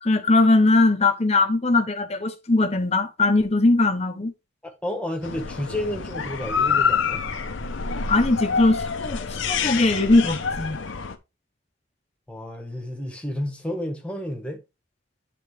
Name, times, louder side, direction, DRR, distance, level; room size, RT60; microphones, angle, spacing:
voice 1, 0.0-4.3 8.1-10.8, left 2 dB, 30° left, 0.8 m, -20 dB
voice 2, 4.6-7.2 12.3-14.6, left 1 dB, 5° left, 1.2 m, -31 dB
sound 1, 5.2-11.2, left 6 dB, 70° left, 0.7 m, -27 dB
9.5 x 3.8 x 3.2 m
head